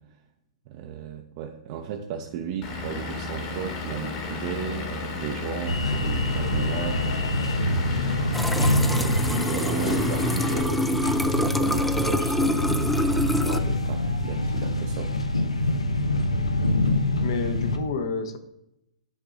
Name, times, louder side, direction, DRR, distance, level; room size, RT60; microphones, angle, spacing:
voice 1, 0.7-7.0 8.8-15.1, right 8 dB, 45° right, 2 dB, 0.6 m, -34 dB
Vehicle / Engine, 2.6-10.6, left 3 dB, 40° left, 1.6 m, -34 dB
sound 1, 5.7-17.8, left 1 dB, 90° left, 0.8 m, -26 dB
sound 2, 8.3-13.6, left 1 dB, 5° left, 0.4 m, -26 dB
voice 2, 17.2-18.4, left 4 dB, 60° left, 7 dB, 1.0 m, -29 dB
9.9 x 3.8 x 3.8 m, 0.85 s
hypercardioid pair, 120°, 3 cm